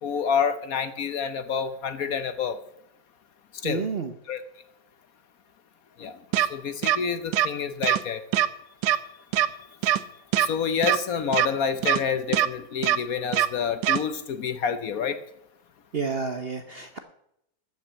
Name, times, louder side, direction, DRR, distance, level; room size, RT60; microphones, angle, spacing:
voice 1, 0.0-2.6 3.6-3.9 4.3-4.4 6.0-8.2 10.4-15.2, left 6 dB, 60° left, 11 dB, 1.1 m, -28 dB
voice 2, 3.6-4.1 15.9-17.0, right 4 dB, 50° right, 7 dB, 0.8 m, -30 dB
sound 1, 6.3-6.5 6.8-7.0 7.3-7.5 7.8-8.0 8.3-8.5 8.8-9.0 9.3-9.5 9.8-10.0 10.3-10.5 10.8-11.0 11.3-11.5 11.8-12.0 12.3-12.5 12.8-13.0 13.3-13.5 13.8-14.0, right 12 dB, 75° right, 1.3 m, -21 dB
13.0 x 6.0 x 8.6 m, 0.77 s
omnidirectional pair, 1.9 m